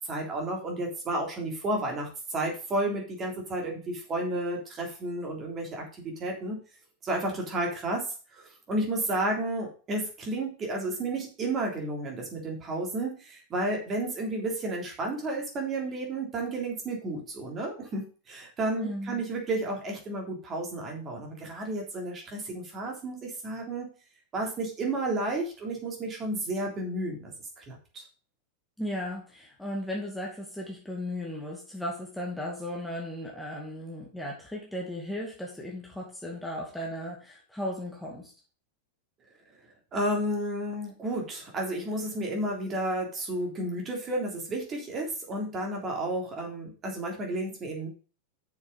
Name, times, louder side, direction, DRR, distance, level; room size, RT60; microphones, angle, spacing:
voice 1, 0.1-6.6 7.0-8.0 8.4-23.9 24.3-27.3 27.6-27.8 39.9-47.9, right 1 dB, 25° right, 0 dB, 3.3 m, -32 dB
voice 2, 18.8-19.2 28.8-38.3, left 1 dB, 5° left, -3 dB, 2.4 m, -36 dB
7.2 x 6.6 x 5.3 m, 0.37 s
figure-of-eight pair, 90°, 0 cm